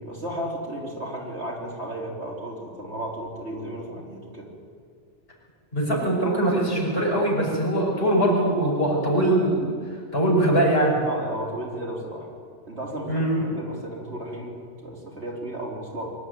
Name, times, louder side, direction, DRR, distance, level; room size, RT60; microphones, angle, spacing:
voice 1, 0.0-4.5 11.0-12.3 12.7-16.1, right 1 dB, 65° right, -3 dB, 4.1 m, -34 dB
voice 2, 5.7-9.7 10.1-11.0 13.1-13.5, right 1 dB, 55° left, -3 dB, 5.8 m, -22 dB
23.5 x 12.0 x 9.4 m, 2.1 s
omnidirectional pair, 1.2 m